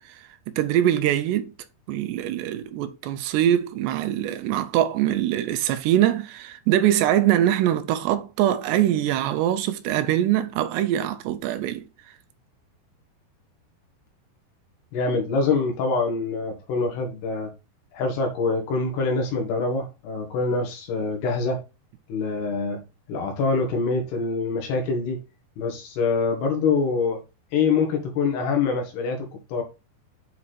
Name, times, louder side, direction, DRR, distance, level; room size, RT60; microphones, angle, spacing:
voice 1, 0.6-1.5 1.9-11.8, right 12 dB, 80° right, 2.7 m, -23 dB
voice 2, 14.9-17.5 17.9-21.6 22.1-22.8 23.1-25.2 25.6-27.2 27.5-29.6, left 4 dB, 70° left, 3.7 m, -25 dB
8.4 x 4.5 x 4.1 m
omnidirectional pair, 5.0 m